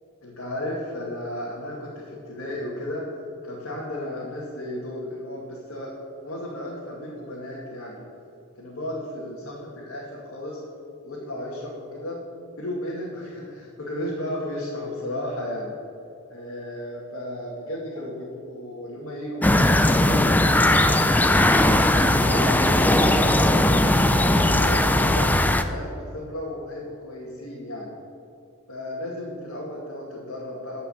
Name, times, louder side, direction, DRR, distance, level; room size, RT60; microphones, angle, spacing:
voice 1, 0.2-3.1 3.4-5.9 6.2-8.0 8.5-10.6 11.0-12.2 12.6-15.7 16.3-21.5 22.1-25.3 25.7-27.9 28.7-30.9, left 1 dB, 80° left, -6 dB, 2.4 m, -34 dB
sound 1, 19.4-25.6, left 1 dB, 10° left, 0.4 m, -19 dB
13.5 x 5.6 x 8.0 m, 2.4 s
head